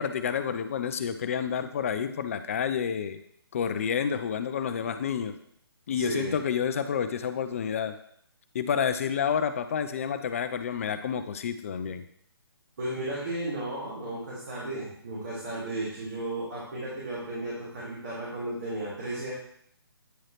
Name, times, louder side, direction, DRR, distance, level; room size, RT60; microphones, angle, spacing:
voice 1, 0.0-3.2 3.5-5.3 5.9-8.0 8.5-12.0, left 7 dB, 35° left, 10 dB, 0.4 m, -29 dB
voice 2, 5.9-6.3 12.8-19.3, right 1 dB, 50° right, -9 dB, 3.0 m, -34 dB
9.0 x 4.7 x 3.0 m, 0.68 s
figure-of-eight pair, 150°, 13 cm